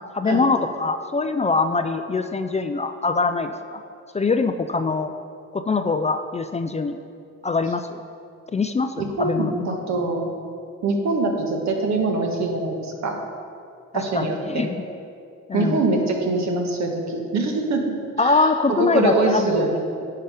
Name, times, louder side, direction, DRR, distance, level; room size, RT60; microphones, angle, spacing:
voice 1, 0.0-3.8 4.1-5.1 5.5-7.0 7.4-8.0 8.5-9.5 14.1-14.7 15.5-15.8 18.2-19.8, left 4 dB, 25° left, 8 dB, 0.4 m, -23 dB
voice 2, 9.0-10.3 10.8-13.1 13.9-14.6 15.5-20.0, right 3 dB, 65° right, 2 dB, 1.4 m, -24 dB
10.5 x 5.8 x 5.0 m, 2.4 s
cardioid pair, 90°, 30 cm